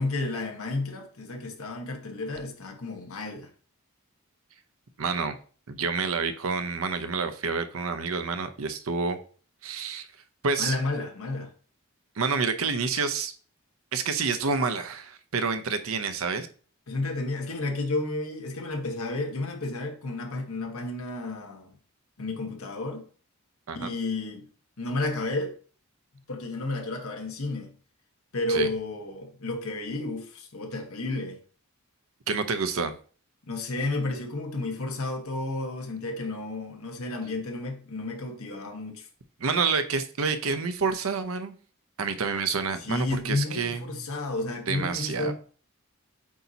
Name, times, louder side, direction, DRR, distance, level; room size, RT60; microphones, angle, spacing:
voice 1, 0.0-3.5 10.6-11.5 16.9-21.7 22.2-23.0 23.7-24.5 24.8-25.6 26.3-27.7 28.3-31.4 33.5-39.1 42.8-45.3, left 2 dB, 75° left, 1.3 m, -32 dB
voice 2, 5.0-5.4 5.7-9.2 9.6-10.1 10.4-10.7 12.2-13.3 13.9-16.5 23.7-23.9 28.5-28.7 32.3-32.9 39.4-41.5 42.0-44.0 44.7-45.3, right 5 dB, 70° right, 0.7 m, -28 dB
8.2 x 2.8 x 4.0 m
head